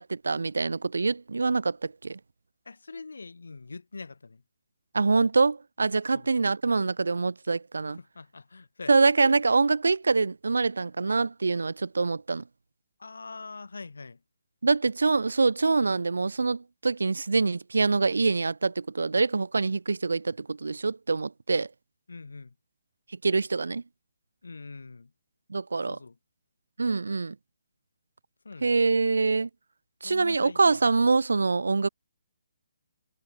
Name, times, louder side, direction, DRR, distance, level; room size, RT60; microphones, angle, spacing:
voice 1, 0.0-2.2 4.9-8.0 8.9-12.4 14.6-21.7 23.2-23.8 25.5-26.0 26.8-27.3 28.6-29.5 30.0-31.9, right 4 dB, 80° right, 1.0 m, -25 dB
voice 2, 2.7-4.4 6.1-6.3 8.0-8.9 13.0-14.2 22.1-22.5 24.4-25.1 25.9-26.2 28.4-28.7 30.0-30.8, left 4 dB, 80° left, 5.3 m, -43 dB
figure-of-eight pair, 145°, 0 cm